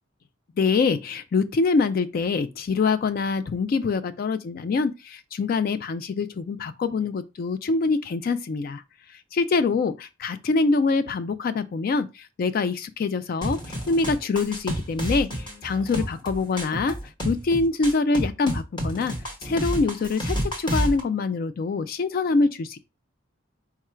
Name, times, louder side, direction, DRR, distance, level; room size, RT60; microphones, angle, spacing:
voice 1, 0.6-8.8 9.3-17.0 17.2-19.1 19.4-22.8, left 4 dB, 50° left, 0.3 m, -25 dB
sound 1, 13.4-21.0, equal, 25° left, 1.1 m, -30 dB
4.6 x 2.4 x 4.3 m
head